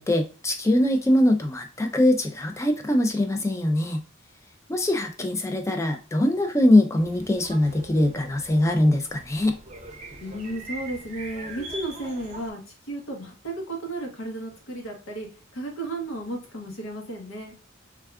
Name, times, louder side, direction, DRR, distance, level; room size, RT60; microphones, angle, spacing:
voice 1, 0.0-4.0 4.7-9.6, left 1 dB, 15° left, 5 dB, 0.3 m, -22 dB
sound 1, 6.9-12.5, right 2 dB, 35° right, 0.5 m, -42 dB
voice 2, 10.2-12.6 12.9-15.3 15.5-17.5, right 1 dB, 80° left, 1 dB, 0.9 m, -33 dB
3.4 x 2.3 x 2.3 m, 0.35 s
head